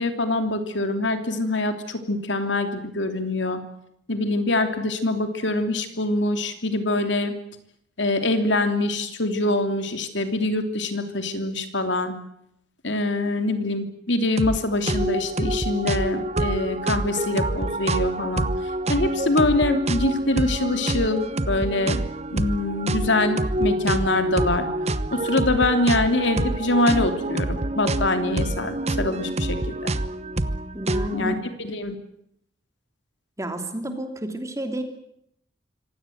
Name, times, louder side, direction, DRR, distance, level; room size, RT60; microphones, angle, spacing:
voice 1, 0.0-3.6 4.1-7.3 8.0-12.2 12.8-18.5 18.9-22.0 22.3-24.7 25.1-29.9 31.1-31.9, left 2 dB, 75° left, 7 dB, 3.1 m, -24 dB
sound 1, 14.4-14.6 14.9-31.3, right 1 dB, 35° right, 1.0 m, -26 dB
voice 2, 30.7-31.4 33.4-34.8, right 1 dB, 15° right, 6 dB, 3.0 m, -30 dB
25.5 x 17.0 x 9.3 m, 0.76 s
head